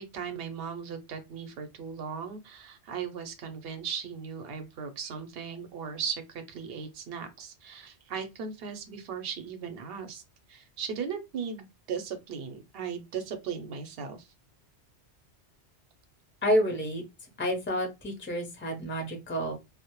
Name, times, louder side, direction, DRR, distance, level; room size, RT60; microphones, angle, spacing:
voice 1, 0.0-10.2 10.5-14.3, right 6 dB, 65° right, 7 dB, 0.7 m, -37 dB
voice 2, 16.4-17.0 17.4-19.5, equal, 15° left, 2 dB, 0.5 m, -29 dB
2.1 x 2.0 x 2.9 m, 0.23 s
omnidirectional pair, 1.1 m